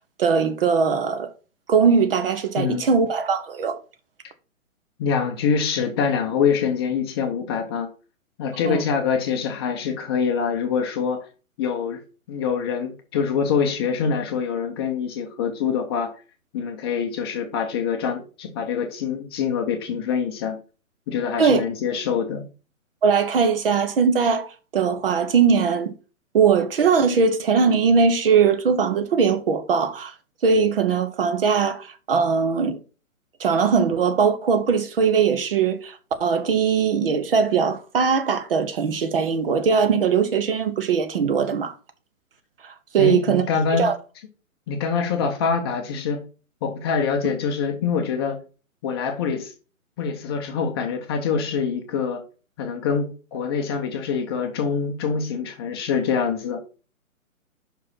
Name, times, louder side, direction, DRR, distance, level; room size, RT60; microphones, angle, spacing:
voice 1, 0.2-1.3 1.7-3.8 8.6-8.8 21.4-21.6 23.0-25.9 26.3-30.1 30.4-32.8 33.4-41.8 42.6-43.5 43.8-43.9, right 6 dB, 40° right, 0.9 m, -20 dB
voice 2, 5.0-7.9 8.4-11.3 11.6-12.0 12.3-16.1 16.5-20.6 21.1-22.5 43.0-43.9 44.7-46.2 46.6-48.4 48.8-49.5 50.0-52.2 52.6-56.6, left 6 dB, 20° left, 0.7 m, -25 dB
5.6 x 4.7 x 5.5 m
figure-of-eight pair, 130°, 42 cm